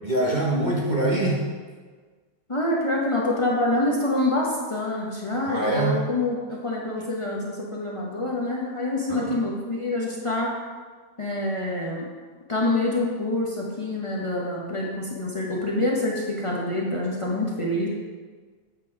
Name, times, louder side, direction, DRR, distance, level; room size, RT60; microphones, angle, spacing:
voice 1, 0.0-1.4 5.5-6.1 9.1-9.3, right 1 dB, 60° right, -3 dB, 0.4 m, -24 dB
voice 2, 2.5-10.5 11.2-12.0 12.5-17.9, left 2 dB, 35° left, -4 dB, 0.5 m, -26 dB
8.1 x 5.3 x 4.7 m, 1.5 s
omnidirectional pair, 2.2 m